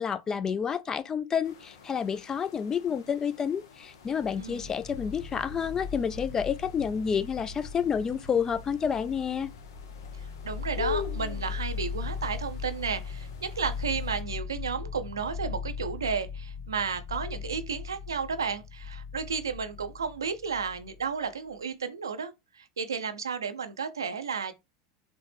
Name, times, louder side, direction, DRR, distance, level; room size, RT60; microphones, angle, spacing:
voice 1, 0.0-9.5, left 7 dB, 25° left, 0.3 m, -29 dB
sound 1, 1.4-14.2, left 7 dB, 75° left, 0.6 m, -44 dB
sound 2, 3.9-21.3, left 6 dB, 45° left, 1.4 m, -39 dB
voice 2, 4.4-4.7 10.4-24.5, right 6 dB, 90° right, 0.4 m, -33 dB
4.0 x 2.0 x 3.2 m
hypercardioid pair, 90°, 2 cm